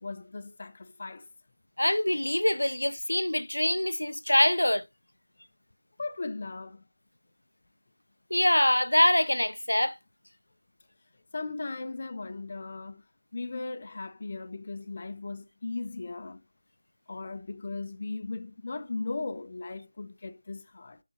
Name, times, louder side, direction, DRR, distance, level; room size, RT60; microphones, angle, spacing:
voice 1, 0.0-1.3 6.0-6.8 11.3-13.0 13.3-16.4 17.1-21.0, left 3 dB, 40° left, 0.6 m, -37 dB
voice 2, 1.8-4.8 8.3-10.0, left 1 dB, 85° left, 0.3 m, -24 dB
9.7 x 3.7 x 2.8 m
figure-of-eight pair, 165°, 0 cm